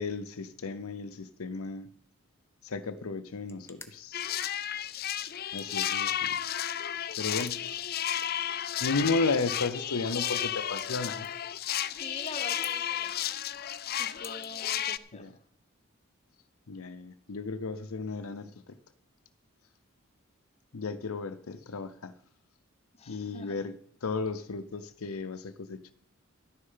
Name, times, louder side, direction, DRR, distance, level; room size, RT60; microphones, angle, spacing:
voice 1, 0.0-1.9 2.6-4.4 5.5-6.5 7.2-7.7 7.9-8.3 8.8-11.3 15.1-15.3 16.7-18.5 20.7-22.1 23.1-23.7 24.0-25.9, left 4 dB, 80° left, 0.7 m, -34 dB
sound 1, 3.2-15.3, left 4 dB, 10° left, 0.8 m, -55 dB
sound 2, 4.1-15.0, left 10 dB, 45° left, 0.5 m, -33 dB
voice 2, 12.0-13.2 14.0-15.4 22.9-23.6, left 3 dB, 30° left, 1.1 m, -45 dB
12.0 x 9.9 x 5.6 m
head